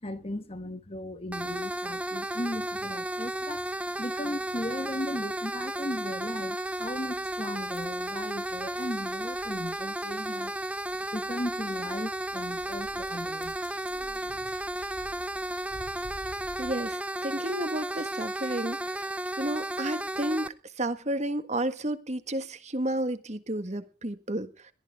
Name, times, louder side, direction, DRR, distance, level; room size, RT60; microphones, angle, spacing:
voice 1, 0.0-3.6 4.0-10.6 11.1-13.6, left 1 dB, 30° left, 1.3 m, -36 dB
sound 1, 1.3-20.5, right 1 dB, 5° right, 0.7 m, -33 dB
sound 2, 6.6-16.9, left 1 dB, 55° left, 5.5 m, -52 dB
voice 2, 16.6-19.1 19.4-20.5 20.8-24.5, right 1 dB, 35° right, 1.6 m, -31 dB
22.0 x 14.5 x 3.6 m
head